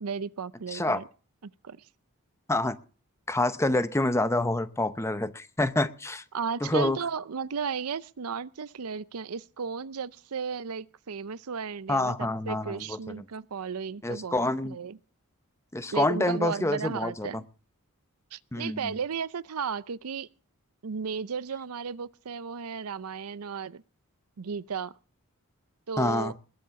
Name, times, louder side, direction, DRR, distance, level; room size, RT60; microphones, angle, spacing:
voice 1, 0.0-1.0 1.4-1.8 6.3-15.0 15.9-17.4 18.3-20.3 20.8-23.8 24.4-24.9 25.9-26.3, right 6 dB, 75° right, 0.6 m, -34 dB
voice 2, 0.7-1.0 2.5-2.8 3.3-6.2 6.6-7.0 11.9-13.0 14.0-14.8 15.7-17.3 18.5-19.0 26.0-26.3, left 2 dB, 10° left, 0.8 m, -27 dB
20.5 x 7.3 x 6.9 m
head